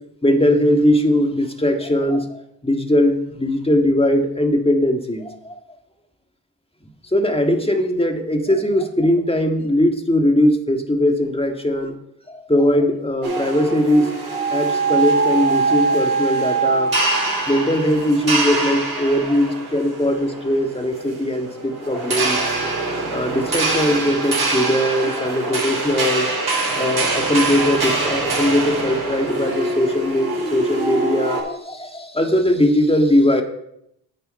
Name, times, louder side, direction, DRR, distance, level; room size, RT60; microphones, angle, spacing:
voice 1, 0.2-5.6 7.1-12.0 12.3-14.1 14.5-16.9 17.5-22.5 23.1-26.3 26.8-33.4, left 1 dB, 15° left, 4 dB, 1.9 m, -20 dB
sound 1, 13.2-31.4, right 3 dB, 55° right, 4.7 m, -23 dB
9.4 x 8.6 x 4.4 m, 0.77 s
supercardioid pair, 40°, 43 cm